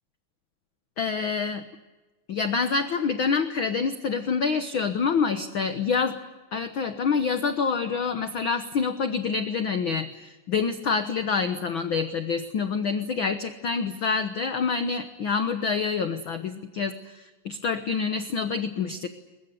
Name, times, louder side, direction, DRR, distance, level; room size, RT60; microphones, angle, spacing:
voice 1, 1.0-1.6 2.3-6.1 6.5-19.1, left 5 dB, 60° left, 9 dB, 1.4 m, -27 dB
22.5 x 21.5 x 9.5 m, 1.2 s
omnidirectional pair, 3.6 m